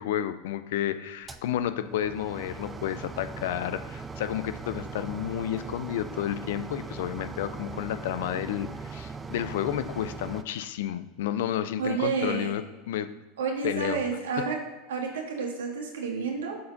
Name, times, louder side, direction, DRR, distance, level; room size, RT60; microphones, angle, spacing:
voice 1, 0.0-13.1 13.6-14.0, left 11 dB, 75° left, 12 dB, 0.5 m, -31 dB
sound 1, 1.3-10.4, right 4 dB, 20° right, 0.5 m, -40 dB
voice 2, 11.8-12.5 13.4-14.6 14.9-16.6, right 5 dB, 85° right, 1 dB, 1.6 m, -30 dB
6.6 x 4.4 x 5.1 m, 1.2 s
hypercardioid pair, 95°, 0 cm